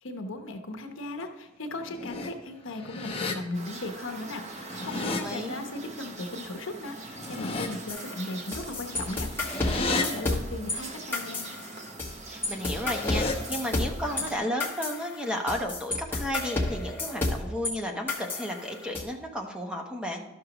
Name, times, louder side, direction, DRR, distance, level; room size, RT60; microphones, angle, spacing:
voice 1, 0.0-11.4, left 2 dB, 75° left, 5 dB, 0.9 m, -37 dB
sound 1, 1.7-2.3 2.7-3.3 4.5-5.2 7.0-7.7 8.9-10.0 12.6-13.3, left 3 dB, 30° left, 0.8 m, -32 dB
sound 2, 3.5-14.4, right 3 dB, 35° right, 0.8 m, -43 dB
voice 2, 5.1-5.6 12.3-20.2, equal, 5° right, 2 dB, 0.8 m, -33 dB
sound 3, 7.9-10.8 11.1-12.1 12.4-17.7 18.1-19.0, left 2 dB, 10° left, 1.1 m, -31 dB
12.0 x 6.4 x 3.0 m, 0.99 s
head